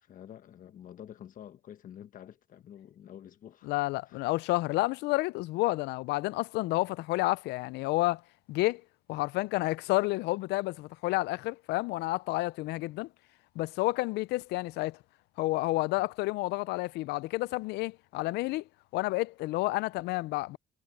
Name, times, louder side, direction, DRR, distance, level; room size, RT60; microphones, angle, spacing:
voice 1, 0.0-3.7 4.1-4.2 16.0-16.1, left 10 dB, 55° left, 1.2 m, -49 dB
voice 2, 3.6-8.2 8.5-8.8 9.1-13.1 13.6-15.0 15.4-18.6 18.9-20.6, left 20 dB, 85° left, 0.4 m, -30 dB
cardioid pair, 110°, 17 cm